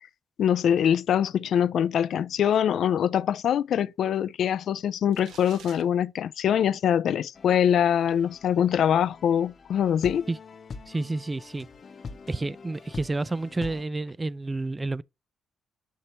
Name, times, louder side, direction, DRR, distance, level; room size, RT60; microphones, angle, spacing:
voice 1, 0.4-10.3, left 9 dB, 65° left, 0.3 m, -23 dB
sound 1, 5.1-5.8, right 7 dB, 80° right, 1.2 m, -48 dB
sound 2, 7.3-13.8, left 4 dB, 45° left, 0.7 m, -44 dB
voice 2, 10.9-11.7 12.3-15.0, right 2 dB, 20° right, 0.3 m, -30 dB
6.6 x 5.5 x 2.9 m
cardioid pair, 90°, 0 cm